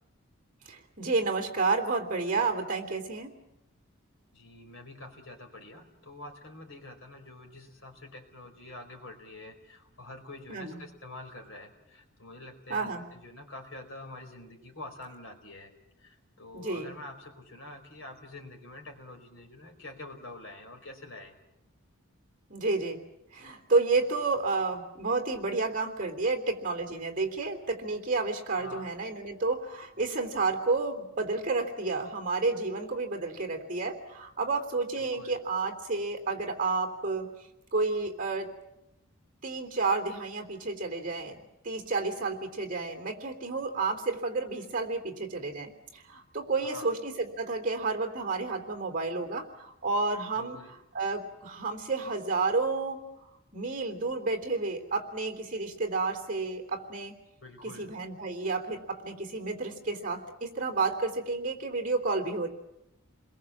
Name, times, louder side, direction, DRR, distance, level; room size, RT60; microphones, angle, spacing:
voice 1, 0.7-3.3 10.5-10.8 12.7-13.0 16.5-16.9 22.5-23.0 23.3-37.3 37.7-38.5 39.4-50.6 50.9-53.0 53.5-57.1 57.8-62.5, right 3 dB, 40° right, 5 dB, 3.3 m, -30 dB
voice 2, 4.3-15.7 16.0-21.4 28.6-28.8 35.0-35.4 46.6-46.9 50.3-50.7 57.4-57.9, left 2 dB, 60° left, 4 dB, 4.7 m, -46 dB
30.0 x 22.0 x 7.4 m, 0.84 s
head